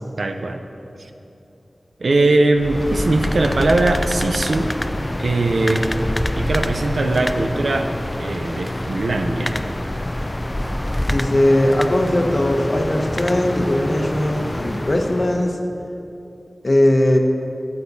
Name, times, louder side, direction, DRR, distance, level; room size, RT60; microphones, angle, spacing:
voice 1, 0.2-0.6 2.0-4.7 5.2-5.9 6.4-7.9 8.2-9.6, right 2 dB, 85° right, 5 dB, 0.5 m, -20 dB
sound 1, 2.5-15.5, left 1 dB, 25° left, 0.4 m, -26 dB
voice 2, 11.1-15.5 16.6-17.2, left 1 dB, 45° left, 2 dB, 0.9 m, -18 dB
13.0 x 8.4 x 2.7 m, 2.8 s
wide cardioid pair, 50°, 0 cm